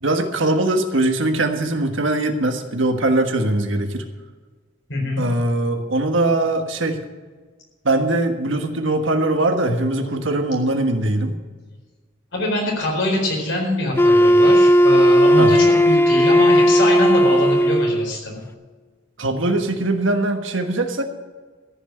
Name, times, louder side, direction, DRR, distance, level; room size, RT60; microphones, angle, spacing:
voice 1, 0.0-4.0 5.2-7.0 7.8-11.4 15.4-15.5 19.2-21.0, right 2 dB, 75° right, 5 dB, 1.5 m, -21 dB
voice 2, 4.9-5.2 12.3-18.4, left 1 dB, 70° left, -1 dB, 4.5 m, -23 dB
Wind instrument woodwind instrument, 14.0-18.1, equal, 10° left, 0.5 m, -14 dB
14.0 x 6.2 x 8.8 m, 1.4 s
head